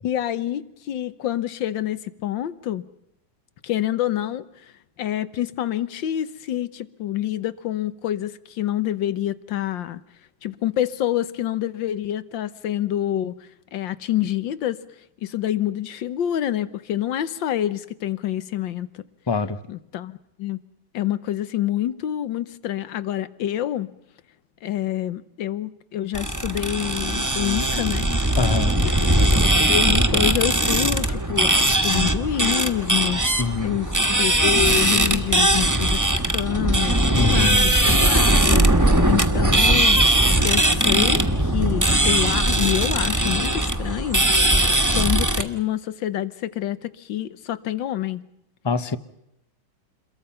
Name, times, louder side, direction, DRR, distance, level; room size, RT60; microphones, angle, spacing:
voice 1, 0.0-2.8 3.6-4.4 5.0-10.0 10.4-13.3 13.7-14.8 15.2-19.0 19.7-20.6 20.9-23.9 24.6-28.4 28.8-33.2 33.6-33.9 34.2-36.0 36.3-40.0 40.4-44.3 44.9-48.2, left 12 dB, 85° left, 1.7 m, -27 dB
voice 2, 19.3-19.6 28.4-28.8 33.4-33.8 37.2-37.6 48.6-49.0, left 4 dB, 30° left, 0.4 m, -24 dB
sound 1, 26.1-45.4, right 1 dB, 10° right, 1.4 m, -20 dB
29.0 x 22.5 x 5.7 m
omnidirectional pair, 2.0 m